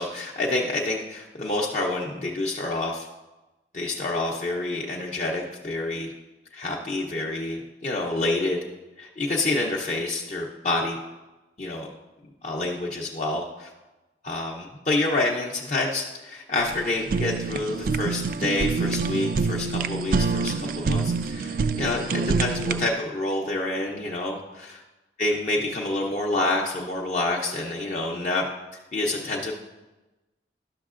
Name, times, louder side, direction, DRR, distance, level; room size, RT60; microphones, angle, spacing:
voice 1, 0.0-3.1 3.7-6.1 6.5-8.6 9.0-11.0 11.6-11.9 12.4-13.7 14.2-24.8 25.2-28.5 28.9-29.5, left 2 dB, 40° left, -2 dB, 0.6 m, -28 dB
Fire, 16.6-22.9, right 4 dB, 50° right, 0.3 m, -26 dB
11.5 x 6.3 x 2.4 m, 1.1 s
head